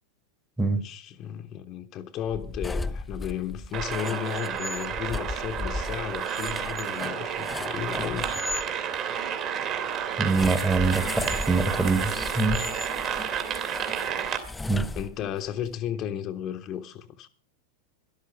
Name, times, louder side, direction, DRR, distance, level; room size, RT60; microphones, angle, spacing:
voice 1, 0.7-8.3 14.9-17.3, left 10 dB, 35° left, 0.9 m, -34 dB
sound 1, 2.2-8.7 10.2-15.5, left 2 dB, 10° left, 0.5 m, -36 dB
sound 2, 3.7-14.4, right 8 dB, 35° right, 2.1 m, -31 dB
voice 2, 10.2-12.6 14.7-14.8, right 3 dB, 10° right, 1.3 m, -24 dB
13.0 x 12.0 x 5.1 m
figure-of-eight pair, 90°, 0 cm